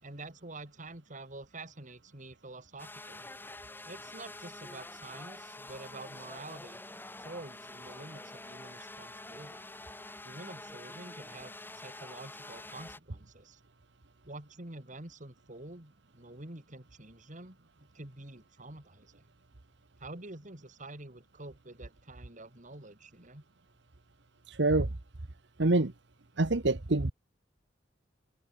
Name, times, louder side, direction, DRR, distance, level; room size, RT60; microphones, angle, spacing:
voice 1, 0.0-3.3 3.8-6.8 7.2-9.6 10.2-13.6 14.2-19.2 20.0-23.4, right 2 dB, 45° right, 3.2 m, -48 dB
sound 1, 2.8-13.0, left 2 dB, 10° left, 4.4 m, -47 dB
voice 2, 24.5-24.9 25.6-25.9 26.4-27.1, right 2 dB, 65° right, 1.2 m, -26 dB
open air
head